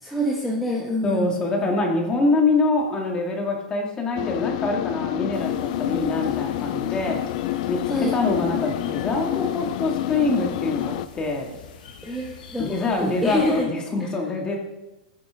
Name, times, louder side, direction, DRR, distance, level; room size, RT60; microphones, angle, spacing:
voice 1, 0.0-1.3 7.9-8.1 12.0-12.7 13.0-13.7 14.0-14.1, left 1 dB, ahead, -3 dB, 1.5 m, -26 dB
voice 2, 1.0-7.2 7.7-11.6 12.6-14.6, left 3 dB, 20° left, 1 dB, 2.4 m, -25 dB
sound 1, 4.2-11.1, left 14 dB, 50° left, 0.5 m, -27 dB
sound 2, 5.3-13.7, left 5 dB, 75° left, 2.5 m, -45 dB
21.5 x 9.2 x 3.9 m, 1.0 s
supercardioid pair, 155°, 5 cm